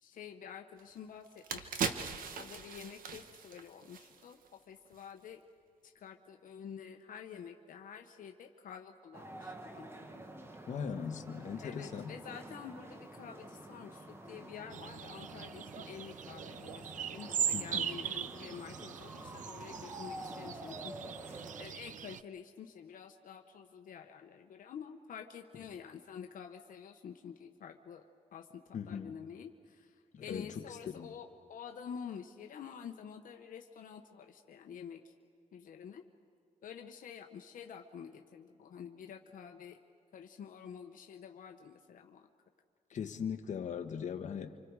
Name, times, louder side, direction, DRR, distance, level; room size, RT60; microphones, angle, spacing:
voice 1, 0.0-1.9 2.4-5.4 5.8-9.9 11.6-35.1 35.5-36.0 36.6-39.8 40.1-42.3, left 7 dB, 75° left, 4 dB, 1.1 m, -49 dB
sound 1, 0.8-0.9 1.3-4.5 4.9-5.0, right 6 dB, 85° right, 1.4 m, -39 dB
sound 2, 9.1-21.7, right 1 dB, 15° right, 1.4 m, -49 dB
voice 2, 10.7-12.1 17.5-17.9 28.7-29.1 30.1-31.1 42.9-44.6, left 7 dB, 60° left, 5 dB, 1.3 m, -39 dB
sound 3, 14.7-22.2, right 9 dB, 65° right, 0.6 m, -40 dB
29.5 x 26.5 x 4.8 m, 2.2 s
wide cardioid pair, 145°, 14 cm